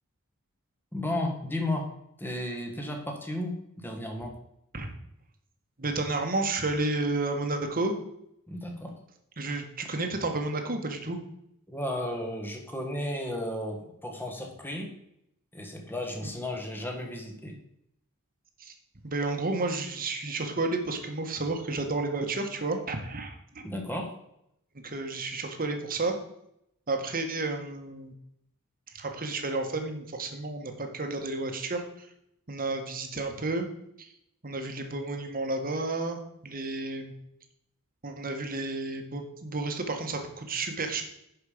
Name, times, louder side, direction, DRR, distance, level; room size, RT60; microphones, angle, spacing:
voice 1, 0.9-4.4 8.5-9.0 11.7-14.9 15.5-17.6 23.6-24.2, left 1 dB, 10° left, 2 dB, 1.5 m, -34 dB
voice 2, 5.8-7.9 9.4-11.2 18.6-18.7 19.0-23.6 24.8-26.1 26.9-28.1 28.9-32.1 32.5-33.7 34.0-34.1 34.4-37.1 38.0-41.0, right 2 dB, 40° right, 5 dB, 1.4 m, -31 dB
11.0 x 5.4 x 5.0 m, 0.79 s
head